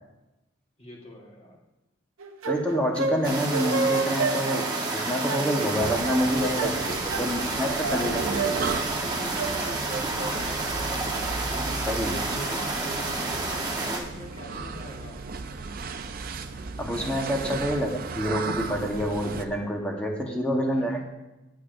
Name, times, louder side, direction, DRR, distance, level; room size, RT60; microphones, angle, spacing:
voice 1, 0.8-1.6 2.7-2.9 6.6-7.0 7.6-8.3 8.9-11.0 11.3-15.2 16.9-17.2 20.7-21.0, left 1 dB, 30° left, -1 dB, 1.5 m, -42 dB
sound 1, 2.2-10.7, right 4 dB, 85° right, 0.8 m, -31 dB
voice 2, 2.4-8.2 11.9-12.2 16.8-21.0, equal, 5° left, 0 dB, 1.2 m, -27 dB
sound 2, 3.2-14.0, right 2 dB, 20° right, 1.2 m, -30 dB
sound 3, 5.8-19.5, right 4 dB, 45° right, 0.5 m, -36 dB
18.0 x 6.7 x 2.6 m, 1.0 s
head